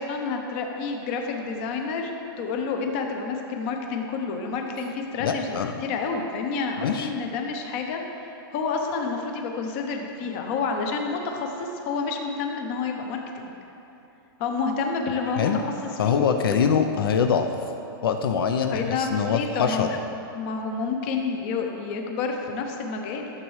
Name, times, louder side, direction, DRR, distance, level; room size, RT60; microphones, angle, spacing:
voice 1, 0.0-8.0 8.5-13.6 14.4-15.6 16.0-16.2 18.7-19.9 20.3-23.3, left 4 dB, 30° left, 3 dB, 0.7 m, -29 dB
voice 2, 5.2-5.7 6.8-7.1 15.4-15.6 16.0-17.5 18.0-19.9, left 7 dB, 65° left, 6 dB, 0.6 m, -23 dB
12.5 x 7.2 x 3.2 m, 2.9 s
supercardioid pair, 175°, 13 cm